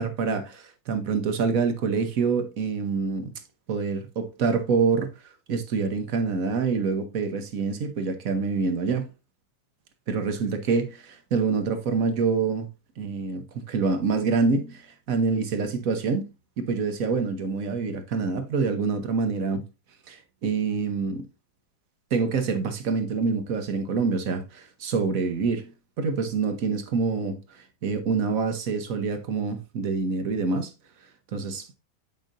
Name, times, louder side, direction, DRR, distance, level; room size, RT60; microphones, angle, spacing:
voice 1, 0.0-3.3 3.7-5.1 5.5-9.1 10.1-12.7 13.0-16.3 16.6-19.6 20.1-21.3 22.1-25.7 26.0-30.7 31.3-31.7, right 5 dB, 55° right, 1.1 m, -26 dB
9.1 x 5.2 x 2.6 m
omnidirectional pair, 2.2 m